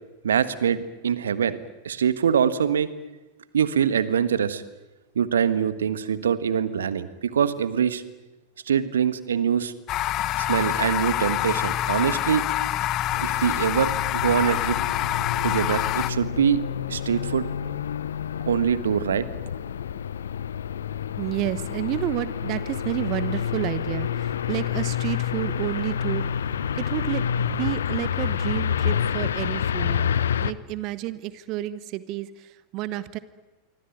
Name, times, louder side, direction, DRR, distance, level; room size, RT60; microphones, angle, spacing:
voice 1, 0.2-1.6 1.8-2.9 3.5-4.6 5.1-8.0 8.7-9.7 10.4-12.5 13.2-14.8 15.4-17.4 18.5-19.2, right 8 dB, 65° right, 13 dB, 1.5 m, -24 dB
sound 1, 9.9-16.1, left 14 dB, 35° left, 1.0 m, -26 dB
sound 2, 13.1-30.5, left 8 dB, 65° left, 0.9 m, -28 dB
voice 2, 21.2-26.3 26.7-30.1 30.4-33.2, right 15 dB, 40° right, 16 dB, 1.1 m, -30 dB
26.5 x 24.5 x 9.1 m, 1.1 s
figure-of-eight pair, 90°, 0 cm